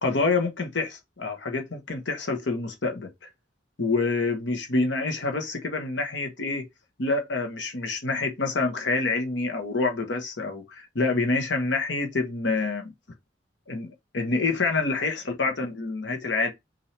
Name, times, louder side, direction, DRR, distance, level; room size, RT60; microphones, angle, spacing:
voice 1, 0.0-3.1 3.8-6.6 7.0-12.9 13.7-13.9 14.1-16.5, left 3 dB, 85° left, 1.1 m, -27 dB
5.7 x 2.8 x 3.3 m
head